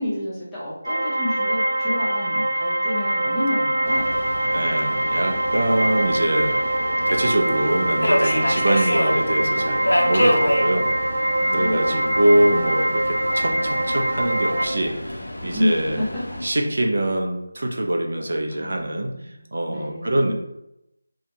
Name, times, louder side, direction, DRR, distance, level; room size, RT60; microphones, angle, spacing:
voice 1, 0.0-4.1 11.4-12.2 15.5-16.1 18.5-20.3, left 1 dB, ahead, -13 dB, 0.5 m, -29 dB
sound 1, 0.8-14.7, right 1 dB, 85° right, 0.8 m, -23 dB
Subway metro underground, 3.9-16.5, left 1 dB, 80° left, 0.5 m, -28 dB
voice 2, 4.5-6.6 7.1-10.9 11.2-16.0 16.4-20.3, right 1 dB, 65° right, 2 dB, 0.4 m, -24 dB
2.2 x 2.1 x 2.9 m, 0.85 s
figure-of-eight pair, 170°, 0 cm